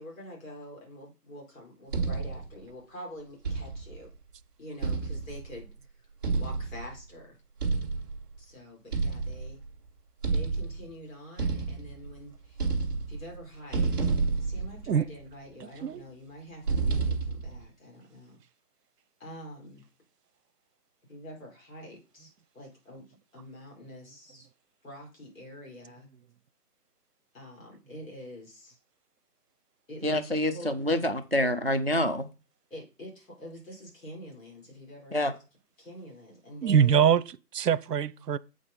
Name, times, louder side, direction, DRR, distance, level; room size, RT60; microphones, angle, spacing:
voice 1, 0.0-4.1 4.6-5.7 6.4-7.4 8.4-9.6 10.3-12.6 13.1-14.1 14.4-18.4 19.2-19.8 21.1-24.5 24.8-26.1 27.3-28.8 29.9-31.1 32.7-35.3 35.8-37.1, equal, 55° left, 5.2 m, -46 dB
sound 1, 1.9-2.5 3.4-4.0 4.8-5.6 6.2-7.0 7.6-8.2 8.9-9.7 10.2-10.9 11.4-12.2 12.5-13.4 13.7-15.2 16.7-17.6, right 4 dB, 15° right, 1.1 m, -30 dB
voice 2, 15.6-16.0 36.6-38.4, right 8 dB, 85° right, 0.7 m, -24 dB
voice 3, 30.0-32.3 35.1-35.3, left 1 dB, 40° right, 0.4 m, -27 dB
7.8 x 5.1 x 5.4 m
hypercardioid pair, 175°, 47 cm